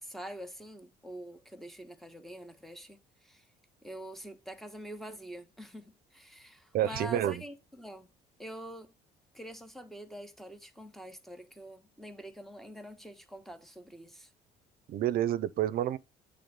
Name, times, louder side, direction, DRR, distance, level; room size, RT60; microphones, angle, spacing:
voice 1, 0.0-3.5 3.8-8.1 8.4-8.9 9.3-14.3, equal, ahead, 1.2 m, -45 dB
voice 2, 6.7-7.4 14.9-16.0, right 12 dB, 60° right, 0.6 m, -29 dB
8.5 x 3.5 x 5.2 m
cardioid pair, 110°, 17 cm